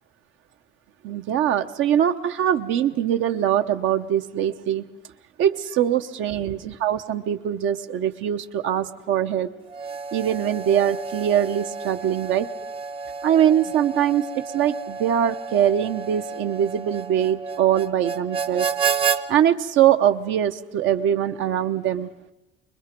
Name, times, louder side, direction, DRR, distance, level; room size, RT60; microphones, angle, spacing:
voice 1, 1.0-4.8 5.4-9.5 10.1-12.5 13.2-14.3 14.5-18.7 19.3-22.1, right 10 dB, 75° right, 8 dB, 0.9 m, -22 dB
Harmonica, 9.7-19.2, right 5 dB, 30° right, 0.7 m, -30 dB
24.0 x 21.5 x 5.2 m, 0.99 s
cardioid pair, 170°, 20 cm